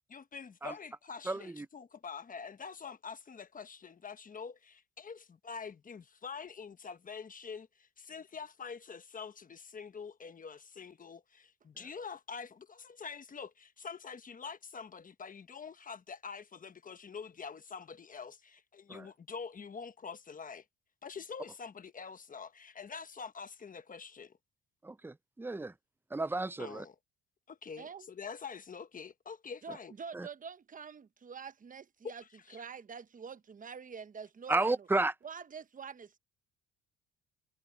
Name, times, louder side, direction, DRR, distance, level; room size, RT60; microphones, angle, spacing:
voice 1, 0.1-20.6 21.0-24.3 26.6-26.9 27.5-29.9 32.5-32.6, left 5 dB, 30° left, 1.1 m, -46 dB
voice 2, 1.3-1.7 18.9-19.1 24.8-25.7 26.1-26.8 30.1-30.3 34.5-35.1, right 2 dB, 10° right, 0.5 m, -32 dB
voice 3, 27.8-28.1 29.6-32.2 32.5-34.9 35.2-36.1, right 6 dB, 25° right, 1.0 m, -46 dB
cardioid pair, 115°, 29 cm